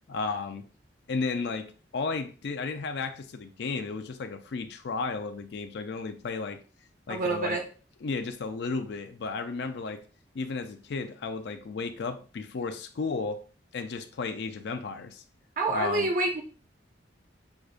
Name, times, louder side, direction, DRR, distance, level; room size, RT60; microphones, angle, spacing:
voice 1, 0.1-0.6 1.1-6.6 7.1-7.6 8.0-10.0 10.3-13.4 13.7-15.2 15.7-16.1, left 4 dB, 60° left, 0.4 m, -33 dB
voice 2, 7.1-7.6 15.6-16.4, right 2 dB, 45° right, 0.5 m, -27 dB
6.2 x 2.3 x 2.4 m
head